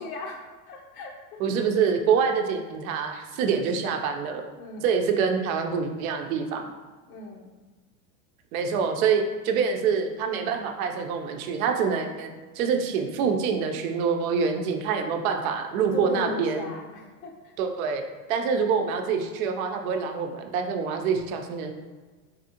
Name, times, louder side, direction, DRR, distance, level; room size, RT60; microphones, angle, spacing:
voice 1, 0.0-1.4 4.6-4.8 7.1-7.5 15.9-17.5, left 2 dB, 75° left, 1 dB, 0.9 m, -37 dB
voice 2, 1.4-4.5 4.8-6.7 8.5-12.3 12.6-16.7 17.6-18.0 18.3-21.7, right 6 dB, 75° right, 4 dB, 0.6 m, -26 dB
4.2 x 2.6 x 2.8 m, 1.4 s
supercardioid pair, 125°, 43 cm